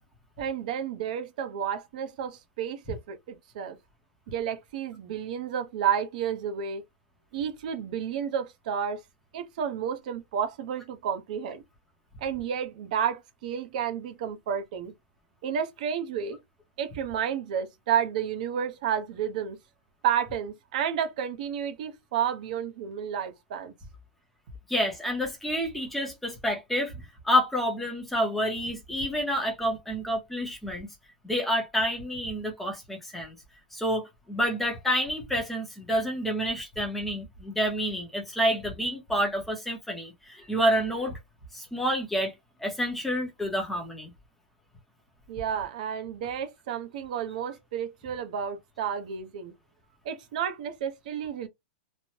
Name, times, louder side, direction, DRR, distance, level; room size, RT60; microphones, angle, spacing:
voice 1, 0.4-3.8 4.3-6.8 7.3-9.0 9.3-11.6 12.2-14.9 15.4-16.4 16.8-19.6 20.0-23.7 45.3-49.5 50.0-51.5, right 8 dB, 45° right, 0.7 m, -31 dB
voice 2, 24.7-30.9 31.2-33.4 33.7-41.2 41.5-42.3 42.6-44.1, equal, 5° left, 0.7 m, -28 dB
3.1 x 2.0 x 2.7 m
supercardioid pair, 175°, 6 cm